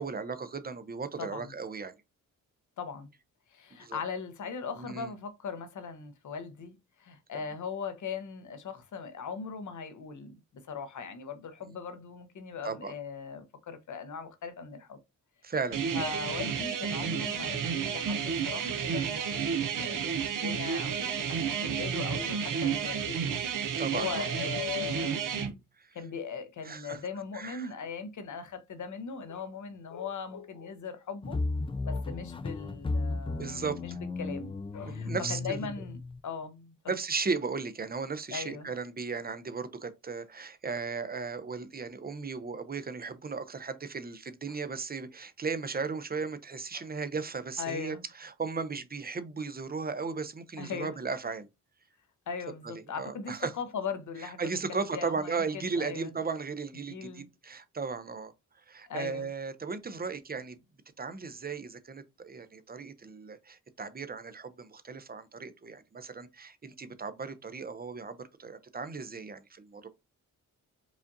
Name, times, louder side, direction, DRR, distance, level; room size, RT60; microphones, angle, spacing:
voice 1, 0.0-1.9 3.7-4.0 4.8-5.1 12.6-12.9 15.4-15.8 23.8-24.3 25.8-25.9 26.6-27.0 27.3-27.7 33.3-33.8 34.8-35.7 36.9-51.5 52.6-53.5 54.2-58.3 58.7-60.6 61.0-69.9, right 4 dB, 30° right, 0.6 m, -36 dB
voice 2, 1.2-1.5 2.8-3.1 3.5-6.7 7.0-15.0 15.9-23.6 23.9-25.5 25.9-31.4 31.8-36.7 38.3-38.7 44.5-44.6 46.7-46.9 47.6-48.0 50.6-50.9 52.3-56.1 56.9-57.3 58.9-59.3, left 6 dB, 60° left, 0.8 m, -39 dB
sound 1, 15.7-25.5, right 7 dB, 65° right, 0.8 m, -31 dB
sound 2, 31.2-36.2, left 3 dB, 15° left, 0.3 m, -34 dB
5.0 x 2.5 x 2.6 m
cardioid pair, 70°, 33 cm